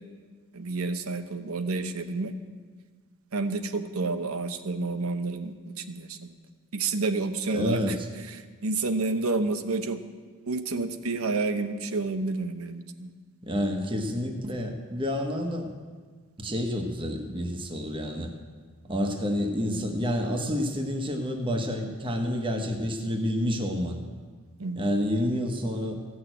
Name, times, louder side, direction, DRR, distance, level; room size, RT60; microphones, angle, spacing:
voice 1, 0.5-2.3 3.3-6.2 6.7-8.0 8.3-10.0 10.5-13.1 24.6-24.8, right 3 dB, 80° right, 9 dB, 0.9 m, -29 dB
voice 2, 7.5-8.1 13.4-15.7 16.4-18.3 18.9-24.0 24.8-26.0, equal, 25° right, 3 dB, 1.2 m, -29 dB
15.5 x 6.4 x 9.1 m, 1.5 s
head